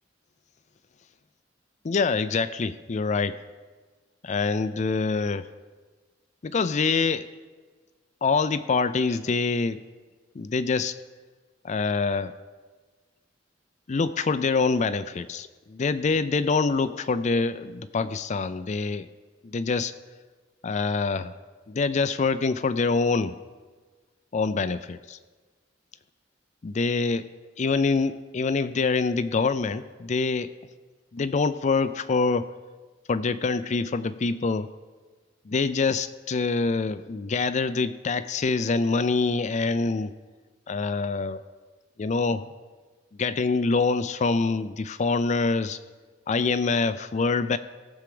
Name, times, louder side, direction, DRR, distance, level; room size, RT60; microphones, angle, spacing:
voice 1, 1.8-3.4 4.2-5.5 6.4-7.3 8.2-9.9 10.3-11.0 11.6-12.3 13.9-19.1 19.4-19.9 20.6-21.3 21.7-23.4 24.3-25.2 26.6-27.3 27.6-30.5 31.1-32.5 33.1-34.7 35.5-40.1 40.7-41.4 42.0-42.5 43.2-45.8 46.3-47.6, left 4 dB, 40° left, 13 dB, 0.4 m, -25 dB
16.0 x 7.2 x 5.1 m, 1.3 s
head